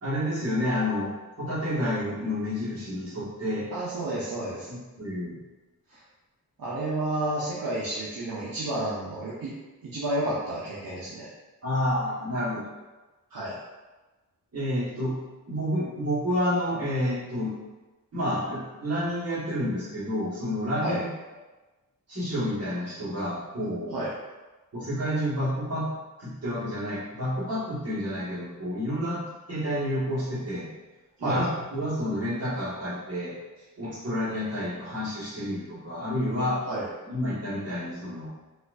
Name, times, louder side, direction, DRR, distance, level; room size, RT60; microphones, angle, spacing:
voice 1, 0.0-1.1 1.4-3.7 4.7-5.4 11.6-12.6 14.5-15.1 15.5-17.5 18.1-21.1 22.1-24.0 24.7-25.9 26.2-29.2 29.5-30.7 31.2-33.3 33.8-36.6 37.1-38.3, equal, 45° right, -10 dB, 1.5 m, -29 dB
voice 2, 3.7-4.7 5.9-6.0 6.6-9.5 9.8-11.3 13.3-13.6 20.8-21.0 23.9-24.1 31.2-31.4 36.7-36.9, right 1 dB, 70° right, -8 dB, 0.7 m, -31 dB
4.1 x 2.5 x 2.5 m, 1.2 s
wide cardioid pair, 175°, 35 cm